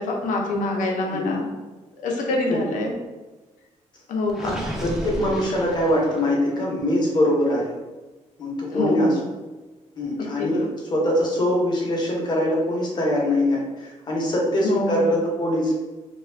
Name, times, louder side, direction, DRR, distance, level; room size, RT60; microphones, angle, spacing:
voice 1, 0.0-1.5 2.0-2.9 4.1-4.6 8.7-9.1 10.4-10.7 14.6-15.0, left 2 dB, 85° left, -1 dB, 0.6 m, -25 dB
voice 2, 2.5-2.8 4.4-4.5 4.8-7.8 8.4-9.2 10.0-15.7, left 1 dB, 35° left, -2 dB, 0.7 m, -23 dB
Gurgling, 4.3-6.4, right 1 dB, 5° right, 0.3 m, -33 dB
2.4 x 2.2 x 3.2 m, 1.2 s
cardioid pair, 175°, 13 cm